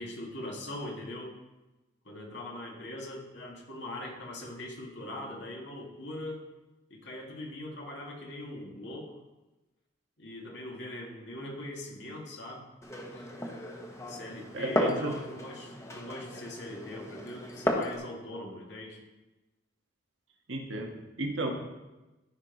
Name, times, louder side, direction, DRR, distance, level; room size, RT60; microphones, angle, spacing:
voice 1, 0.0-1.4 2.0-6.4 6.9-9.2 10.2-12.7 13.1-13.3 14.1-19.0, left 1 dB, 70° left, -1 dB, 2.1 m, -41 dB
Glass, 12.8-18.0, left 1 dB, 15° left, 1.0 m, -34 dB
voice 2, 14.5-15.2 20.5-21.5, right 2 dB, 90° right, 2 dB, 1.4 m, -33 dB
13.5 x 5.4 x 4.0 m, 1.1 s
head